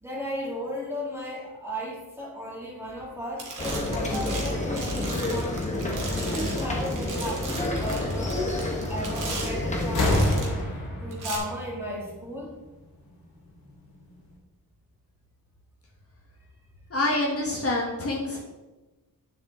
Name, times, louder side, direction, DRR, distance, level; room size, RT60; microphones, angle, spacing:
voice 1, 0.0-5.9 6.3-8.4 8.9-12.6, equal, 5° right, -4 dB, 2.2 m, -35 dB
sound 1, 2.9-3.1 3.4-10.6 11.1-11.4, right 3 dB, 60° right, 2.2 m, -38 dB
sound 2, 3.6-10.3, left 1 dB, 20° left, 1.3 m, -29 dB
sound 3, 9.2-9.5 9.8-12.6 13.7-13.8, left 1 dB, 85° left, 2.9 m, -28 dB
voice 2, 16.9-18.4, left 2 dB, 40° left, -2 dB, 1.4 m, -26 dB
9.3 x 7.0 x 3.6 m, 1.1 s
wide cardioid pair, 165°, 36 cm